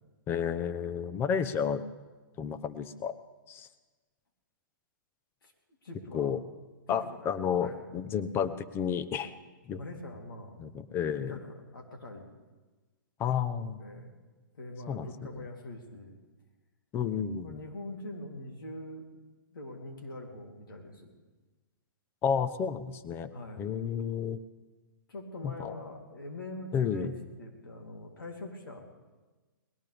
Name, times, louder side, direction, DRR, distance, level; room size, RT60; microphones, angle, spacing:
voice 1, 0.3-1.8 2.4-3.2 3.5-3.7 6.1-6.4 6.9-9.3 9.7-9.8 10.6-11.4 13.2-13.8 14.9-15.1 16.9-17.6 22.2-23.3 23.6-24.4 25.4-25.7 26.7-27.1, left 7 dB, 20° left, 13 dB, 0.8 m, -31 dB
voice 2, 5.8-6.3 6.9-7.8 9.8-10.7 11.1-12.3 13.8-14.1 14.5-16.2 17.4-19.1 19.5-21.1 23.3-23.7 25.1-27.1 27.4-28.8, left 2 dB, 80° left, 1 dB, 3.2 m, -43 dB
20.5 x 17.5 x 3.5 m, 1.3 s
hypercardioid pair, 135°, 11 cm